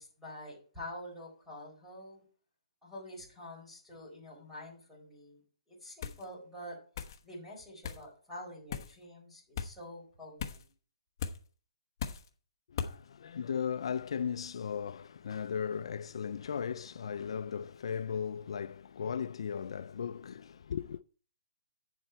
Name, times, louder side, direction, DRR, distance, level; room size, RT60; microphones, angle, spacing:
voice 1, 0.0-2.2 2.8-5.4 5.7-6.8 7.2-10.7, left 1 dB, ahead, 4.3 m, -47 dB
sound 1, 6.0-6.3 7.0-7.2 7.8-8.0 8.7-8.9 9.6-9.7 10.4-10.7 11.2-11.4 12.0-12.3 12.8-13.0, left 7 dB, 35° left, 1.1 m, -37 dB
voice 2, 12.7-21.0, left 7 dB, 60° left, 0.4 m, -37 dB
9.9 x 7.6 x 4.5 m
hypercardioid pair, 170°, 3 cm